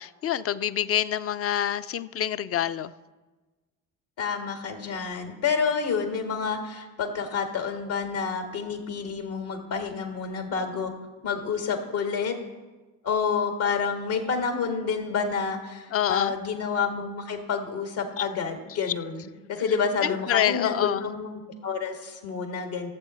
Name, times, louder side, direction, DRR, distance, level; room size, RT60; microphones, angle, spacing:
voice 1, 0.0-2.9 15.9-16.3 20.0-21.0, left 10 dB, 30° left, 16 dB, 0.4 m, -26 dB
voice 2, 4.2-10.9 11.2-12.4 13.0-22.9, left 5 dB, 70° left, 5 dB, 1.9 m, -29 dB
15.0 x 7.5 x 4.3 m, 1.2 s
hypercardioid pair, 45°, 49 cm